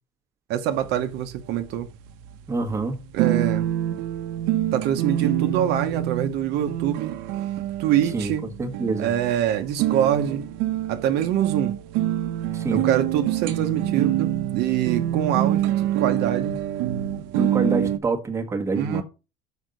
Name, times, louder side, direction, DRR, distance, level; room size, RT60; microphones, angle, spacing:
voice 1, 0.5-1.9 3.1-3.7 4.7-7.1 7.8-8.5 8.9-10.4 10.9-11.7 12.7-16.6 18.7-19.0, right 10 dB, 60° right, 0.9 m, -24 dB
sound 1, 0.7-18.0, right 12 dB, 85° right, 0.9 m, -26 dB
voice 2, 2.5-3.0 8.1-9.1 12.5-12.9 17.3-19.0, right 3 dB, 15° right, 1.2 m, -26 dB
6.3 x 5.1 x 5.1 m
cardioid pair, 155°, 19 cm